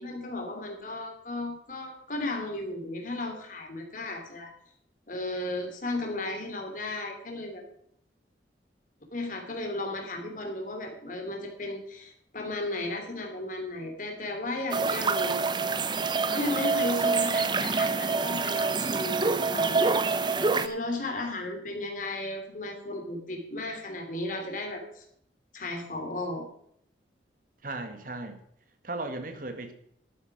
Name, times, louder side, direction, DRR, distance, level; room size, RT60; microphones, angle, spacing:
voice 1, 0.0-4.5 5.1-7.6 9.1-15.5 16.3-25.0 25.5-26.4, left 2 dB, 45° left, 3 dB, 3.1 m, -35 dB
sound 1, 14.7-20.7, right 4 dB, 25° right, 0.6 m, -26 dB
voice 2, 27.6-28.4 28.8-29.7, right 2 dB, 50° right, 7 dB, 1.8 m, -36 dB
12.0 x 8.2 x 6.1 m, 0.69 s
head